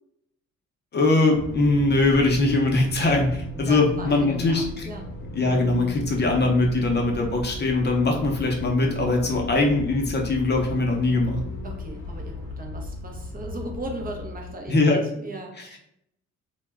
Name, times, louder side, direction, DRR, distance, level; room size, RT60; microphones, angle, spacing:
voice 1, 0.9-4.9 5.3-11.4 14.7-15.0, left 2 dB, 35° left, 1 dB, 0.6 m, -21 dB
sound 1, 1.3-14.8, left 3 dB, 75° left, 0.7 m, -36 dB
voice 2, 3.7-5.1 9.3-9.5 11.6-15.8, right 2 dB, 30° right, 2 dB, 0.5 m, -37 dB
2.2 x 2.0 x 3.3 m, 0.74 s
cardioid pair, 90°, 30 cm